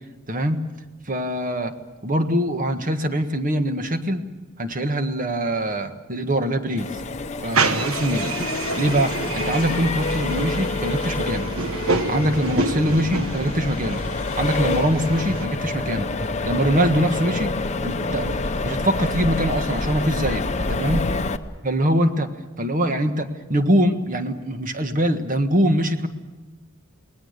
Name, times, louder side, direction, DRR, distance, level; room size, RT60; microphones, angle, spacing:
voice 1, 0.3-0.6 1.1-1.7 2.0-4.3 4.6-6.9 7.4-11.5 12.1-14.0 14.4-16.1 16.5-18.4 18.6-21.0 21.6-22.3 22.6-26.1, right 1 dB, 40° right, 7 dB, 1.5 m, -23 dB
Accelerating revving vroom, 6.8-21.4, left 3 dB, 35° left, 0.8 m, -27 dB
sound 1, 7.5-15.5, right 3 dB, 85° right, 1.4 m, -28 dB
28.5 x 19.5 x 6.7 m, 1.2 s
head